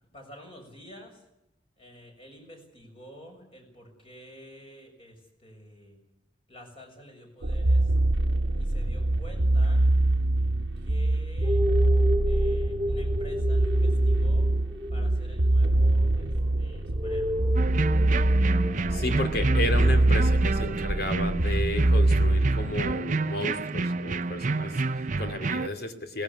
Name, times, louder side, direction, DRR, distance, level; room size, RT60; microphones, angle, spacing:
voice 1, 0.1-1.3 1.8-6.0 6.5-7.9 8.6-9.9 10.8-11.7 12.2-14.5 14.9-17.4, equal, 30° left, 3 dB, 6.8 m, -49 dB
sound 1, 7.4-22.9, right 1 dB, 80° right, 1.1 m, -24 dB
sound 2, 11.4-24.6, left 1 dB, 10° right, 2.3 m, -35 dB
sound 3, 17.6-25.7, right 3 dB, 45° right, 0.7 m, -30 dB
voice 2, 18.9-26.2, left 1 dB, 60° left, 7 dB, 2.7 m, -33 dB
18.5 x 16.0 x 9.9 m, 0.87 s
head